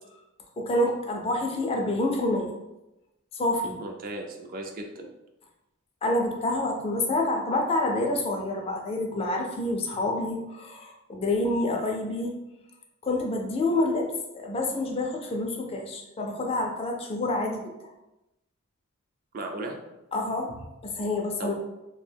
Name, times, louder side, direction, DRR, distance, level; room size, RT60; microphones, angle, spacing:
voice 1, 0.6-2.5 3.3-3.8 6.0-12.4 13.0-17.7 20.1-21.5, left 2 dB, 30° left, 2 dB, 0.3 m, -28 dB
voice 2, 3.8-5.1 19.3-19.8 21.4-21.5, right 2 dB, 45° right, 3 dB, 0.4 m, -36 dB
2.3 x 2.1 x 3.3 m, 0.94 s
head